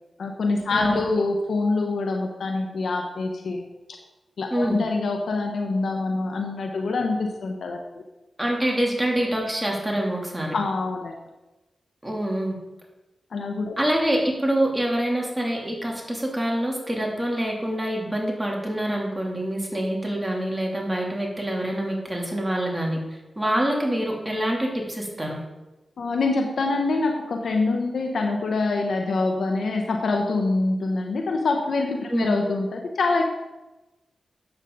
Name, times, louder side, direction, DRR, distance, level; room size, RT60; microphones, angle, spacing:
voice 1, 0.2-3.6 3.9-4.0 4.4-8.0 10.5-11.1 13.3-13.7 26.0-33.2, left 3 dB, 75° left, 3 dB, 1.0 m, -25 dB
voice 2, 8.4-10.5 12.0-12.5 13.8-23.0 23.4-25.4 32.1-32.3, right 1 dB, 15° right, -1 dB, 3.0 m, -25 dB
10.5 x 8.1 x 4.0 m, 1.1 s
cardioid pair, 45°, 0 cm